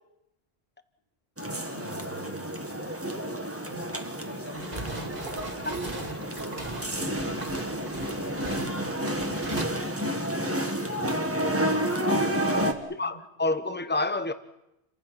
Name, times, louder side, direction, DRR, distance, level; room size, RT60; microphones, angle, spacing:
sound 1, 1.4-12.7, right 1 dB, 10° right, 1.8 m, -30 dB
voice 1, 1.5-2.7 3.1-5.3 5.8-7.8 8.2-11.3 12.3-13.2, equal, 55° left, -1 dB, 6.6 m, -45 dB
sound 2, 4.5-9.6, right 2 dB, 40° right, 2.4 m, -39 dB
voice 2, 13.0-14.3, left 2 dB, 10° left, 11 dB, 1.0 m, -28 dB
29.5 x 24.0 x 5.9 m, 0.89 s
omnidirectional pair, 1.1 m